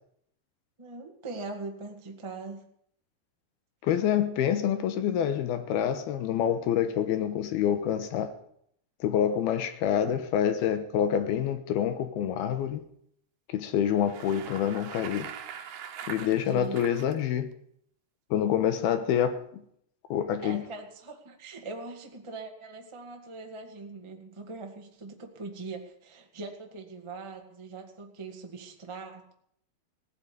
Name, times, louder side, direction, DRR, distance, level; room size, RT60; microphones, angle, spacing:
voice 1, 0.8-2.6 16.0-16.8 20.4-29.3, right 3 dB, 25° right, 0.6 m, -41 dB
voice 2, 3.8-8.3 9.0-12.9 13.5-15.3 16.1-17.5 18.3-19.6 20.1-20.6, left 9 dB, 75° left, 2.9 m, -27 dB
Bicycle, 13.9-17.1, right 9 dB, 65° right, 2.7 m, -42 dB
17.0 x 8.3 x 9.8 m
omnidirectional pair, 4.6 m